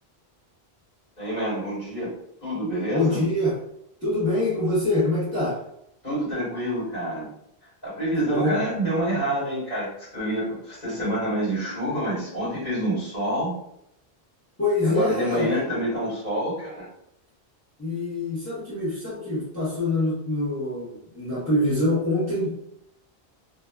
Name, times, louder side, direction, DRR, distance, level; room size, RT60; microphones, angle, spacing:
voice 1, 1.2-2.1 2.4-3.2 6.0-7.3 7.8-13.5 14.8-16.9, right 1 dB, 50° left, -11 dB, 1.6 m, -27 dB
voice 2, 2.9-3.5 4.0-5.6 8.2-8.6 14.6-15.6 17.8-22.5, left 1 dB, 15° left, -10 dB, 1.0 m, -25 dB
2.6 x 2.2 x 2.2 m, 0.75 s
omnidirectional pair, 1.0 m